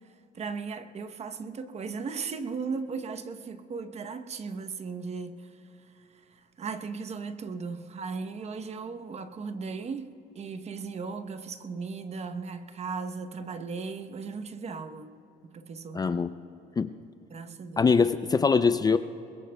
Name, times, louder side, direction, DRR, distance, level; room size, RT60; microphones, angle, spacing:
voice 1, 0.3-15.1 15.5-16.1 17.3-17.9, right 5 dB, 40° right, 9 dB, 0.9 m, -37 dB
voice 2, 15.9-16.3 16.8-16.9 17.8-19.0, left 5 dB, 20° left, 11 dB, 0.4 m, -23 dB
22.5 x 21.0 x 2.3 m, 2.9 s
cardioid pair, 110°, 17 cm